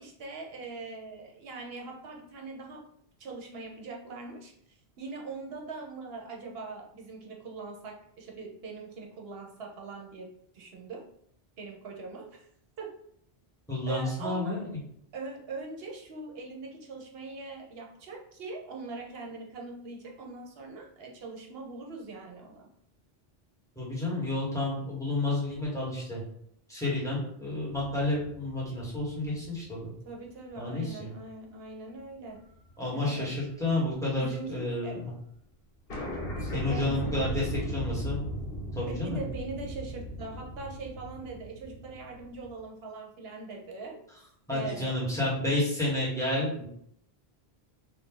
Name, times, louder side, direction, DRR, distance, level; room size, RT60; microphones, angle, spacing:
voice 1, 0.0-2.8 3.2-10.3 10.5-11.1 11.6-12.5 12.8-12.9 13.9-14.6 15.1-22.7 30.0-32.5 32.9-33.4 34.2-35.0 36.4-37.5 39.0-44.0 44.5-45.0, right 3 dB, 70° right, 0 dB, 1.0 m, -42 dB
voice 2, 13.7-14.7 23.7-26.2 26.7-29.9 30.6-31.1 32.8-35.1 36.4-38.2 38.7-39.2 44.5-46.7, left 2 dB, 5° left, -7 dB, 1.4 m, -30 dB
sound 1, 27.7-30.3 30.8-30.9 32.4-32.7 33.0-34.4 34.7-34.8 35.0-35.1 35.4-35.5 35.9-42.6, equal, 75° left, 1.4 m, -37 dB
3.0 x 2.6 x 3.8 m, 0.70 s
omnidirectional pair, 1.0 m